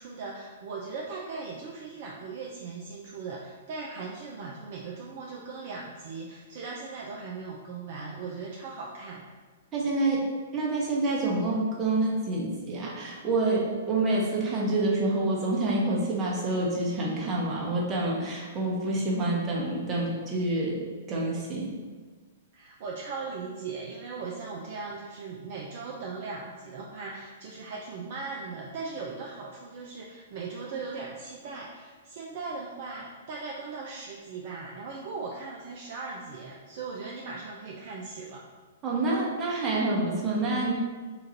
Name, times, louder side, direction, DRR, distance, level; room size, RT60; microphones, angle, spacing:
voice 1, 0.0-9.2 22.5-38.4, right 4 dB, 45° right, -2 dB, 0.5 m, -38 dB
voice 2, 9.7-10.2 10.5-20.8 21.1-21.8 38.8-40.7, right 2 dB, 25° right, -3 dB, 1.0 m, -27 dB
3.9 x 2.5 x 4.2 m, 1.4 s
figure-of-eight pair, 110°, 0 cm